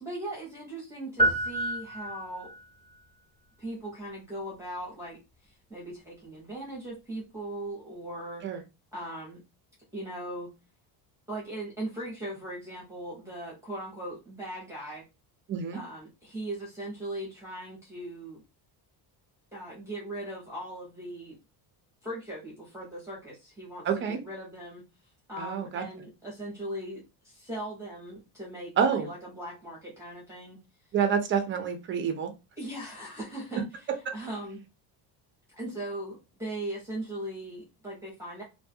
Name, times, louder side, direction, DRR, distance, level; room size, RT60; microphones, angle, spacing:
voice 1, 0.0-2.5 3.6-8.4 8.9-9.4 9.9-10.5 11.3-15.0 15.7-18.4 19.5-21.4 22.0-24.8 25.3-30.6 32.6-33.6 34.1-34.6 35.5-38.4, right 1 dB, 5° right, 0.7 m, -39 dB
sound 1, 1.2-2.7, right 1 dB, 10° left, 1.2 m, -28 dB
voice 2, 15.5-15.8 23.8-24.2 25.4-25.8 28.8-29.1 30.9-32.3, right 7 dB, 30° right, 0.3 m, -27 dB
2.5 x 2.3 x 2.6 m
cardioid pair, 165°, 45 cm